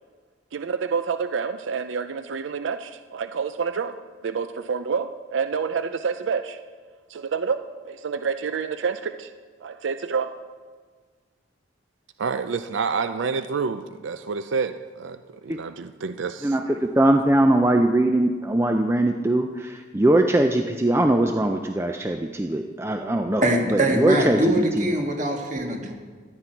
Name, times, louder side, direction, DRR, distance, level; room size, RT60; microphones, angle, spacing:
voice 1, 0.5-4.0 4.2-6.6 7.1-9.3 9.6-10.3 12.2-15.2 15.4-16.6, right 5 dB, 80° right, 10 dB, 0.4 m, -28 dB
voice 2, 16.4-23.4 23.7-24.9, right 1 dB, 15° right, 5 dB, 0.4 m, -21 dB
voice 3, 23.4-25.9, right 1 dB, 40° right, 2 dB, 1.6 m, -23 dB
13.5 x 9.8 x 4.5 m, 1.5 s
head